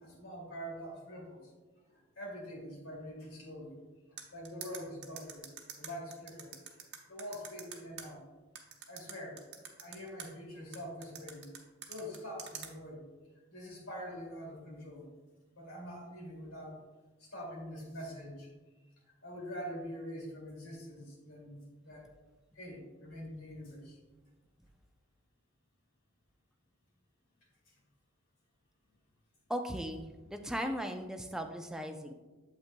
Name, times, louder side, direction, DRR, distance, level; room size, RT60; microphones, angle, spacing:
voice 1, 0.0-1.5 1.9-3.8 4.1-5.5 5.7-6.5 7.1-8.2 8.9-9.4 9.8-11.5 11.9-13.0 13.5-15.1 15.6-16.8 17.2-18.5 19.2-22.1 22.5-24.0 27.7-27.8, equal, 80° left, -2 dB, 2.4 m, -45 dB
sound 1, 4.2-8.0 8.6-10.3 10.7-12.7, right 8 dB, 55° right, 0.9 m, -45 dB
voice 2, 29.5-32.1, equal, 5° right, 4 dB, 0.4 m, -37 dB
8.5 x 7.6 x 2.2 m, 1.2 s
head